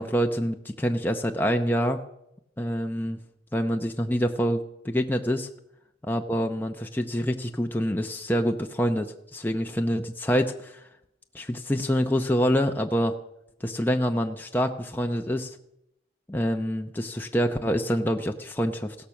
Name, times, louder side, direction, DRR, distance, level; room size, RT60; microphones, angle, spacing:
voice 1, 0.0-2.0 2.6-3.2 3.5-5.5 6.1-10.9 11.3-13.1 13.6-15.6 16.3-19.0, equal, 10° left, 3 dB, 0.7 m, -26 dB
16.5 x 13.5 x 5.9 m, 0.82 s
head